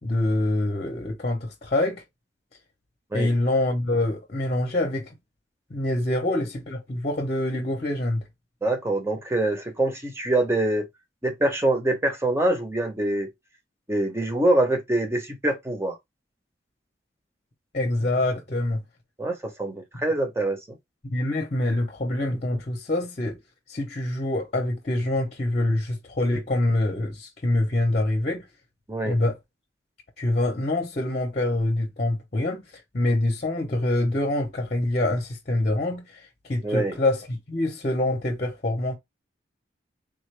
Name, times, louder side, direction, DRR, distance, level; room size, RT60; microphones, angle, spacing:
voice 1, 0.0-2.0 3.1-5.1 5.7-8.2 17.7-18.8 21.0-23.4 23.7-28.4 29.0-29.4 30.2-32.6 32.9-36.2 36.5-38.9, left 1 dB, 40° left, 0.8 m, -25 dB
voice 2, 8.6-10.9 11.2-13.3 13.9-16.0 19.2-20.6 28.9-29.2 36.6-37.0, right 1 dB, 15° right, 0.8 m, -24 dB
3.7 x 2.5 x 3.2 m
head